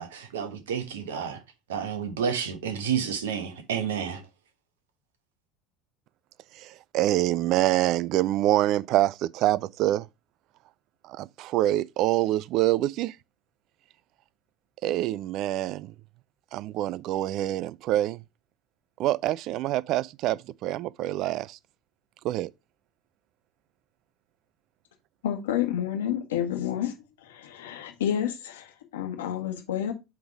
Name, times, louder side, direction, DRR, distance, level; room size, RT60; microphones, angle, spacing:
voice 1, 0.0-1.4 1.7-4.2, right 7 dB, 70° right, 1.1 m, -30 dB
voice 2, 6.6-10.1 11.0-13.2 14.8-15.9 16.5-18.2 19.0-21.6 22.2-22.5, right 14 dB, 50° right, 0.3 m, -26 dB
voice 3, 25.2-26.9 27.2-29.9, left 10 dB, 70° left, 1.4 m, -29 dB
7.9 x 3.6 x 4.7 m
figure-of-eight pair, 70°, 0 cm